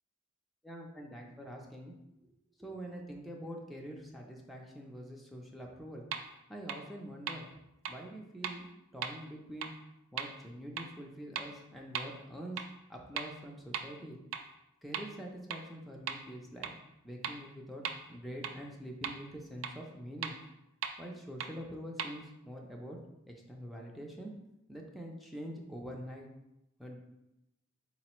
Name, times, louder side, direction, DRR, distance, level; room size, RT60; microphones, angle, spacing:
voice 1, 0.6-1.9 2.6-6.1 6.5-7.5 7.9-8.7 8.9-9.7 10.1-12.6 12.9-14.2 14.8-16.7 17.0-20.3 21.0-23.0 23.3-24.3 24.7-26.3 26.8-27.0, equal, ahead, -1 dB, 0.4 m, -45 dB
sound 1, 6.1-6.2 6.7-6.8 7.3-7.4 7.8-7.9 8.4-8.5 9.0-9.1 9.6-9.7 10.2-10.3 10.8-10.9 11.4-11.5 11.9-12.0 12.6-12.7 13.2-13.3 13.7-13.8 14.3-14.4 14.9-15.0 15.5-15.6 16.1-16.2 16.6-16.7 17.2-17.3 17.8-17.9 18.4-18.5 19.0-19.1 19.6-19.7 20.2-20.3 20.8-20.9 21.4-21.5 22.0-22.1, right 7 dB, 70° right, 0.3 m, -36 dB
4.5 x 2.0 x 4.3 m, 0.90 s
head